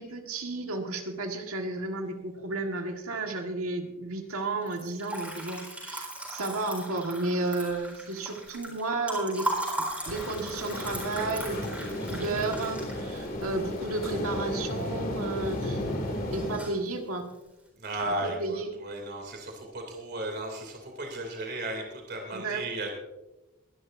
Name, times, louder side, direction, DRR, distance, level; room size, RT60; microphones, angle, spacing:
voice 1, 0.0-9.5 10.0-15.8 16.3-17.3 18.2-18.7 22.3-22.7, right 2 dB, 80° right, 3 dB, 1.7 m, -32 dB
Liquid, 4.6-14.8 15.2-15.8 16.1-16.9, right 1 dB, 5° right, 4.2 m, -37 dB
sound 1, 10.1-16.6, left 1 dB, 45° left, 2.5 m, -34 dB
voice 2, 17.8-22.9, right 1 dB, 50° right, 2 dB, 2.8 m, -35 dB
22.5 x 11.5 x 2.6 m, 1.0 s
head